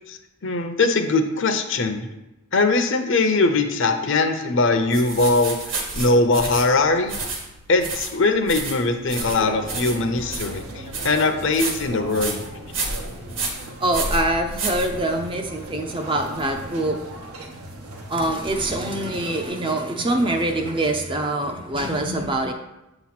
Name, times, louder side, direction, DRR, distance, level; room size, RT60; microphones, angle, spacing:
voice 1, 0.1-2.1 2.5-7.2 7.7-12.4, left 3 dB, 55° left, 7 dB, 0.6 m, -21 dB
sound 1, 4.9-15.4, right 3 dB, 55° right, 1.3 m, -31 dB
sound 2, 9.1-19.5, right 1 dB, 85° right, 1.0 m, -37 dB
voice 2, 13.8-17.0 18.1-22.5, right 1 dB, 20° right, 5 dB, 0.4 m, -24 dB
7.7 x 3.0 x 5.8 m, 0.96 s
head